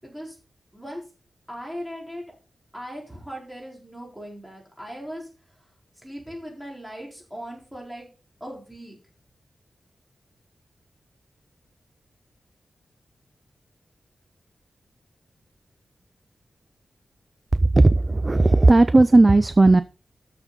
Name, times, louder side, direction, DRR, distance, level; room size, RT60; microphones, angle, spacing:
voice 1, 0.0-0.4 0.7-1.0 1.5-2.2 2.7-5.7 6.0-8.1 8.4-9.0, equal, 5° right, -2 dB, 4.4 m, -38 dB
voice 2, 17.5-19.8, right 2 dB, 25° right, 13 dB, 0.4 m, -15 dB
13.0 x 6.7 x 4.1 m, 0.34 s
wide cardioid pair, 165°, 0 cm